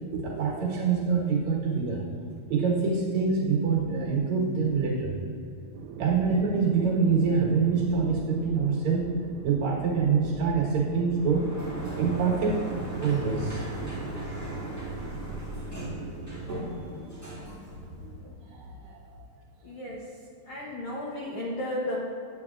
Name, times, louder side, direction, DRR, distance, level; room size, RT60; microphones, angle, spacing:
voice 1, 0.0-2.0 2.5-5.1 6.0-9.1 9.4-11.5 11.9-12.6 13.0-13.6 16.5-17.6 18.0-19.2, right 5 dB, 65° right, -3 dB, 2.5 m, -26 dB
sound 1, 5.7-16.5, right 7 dB, 80° right, 2.0 m, -41 dB
Sliding door, 11.2-18.3, equal, 10° left, 0.7 m, -38 dB
voice 2, 19.6-20.0 20.5-22.0, left 1 dB, 80° left, -4 dB, 1.2 m, -33 dB
9.2 x 9.2 x 2.5 m, 2.6 s
omnidirectional pair, 3.8 m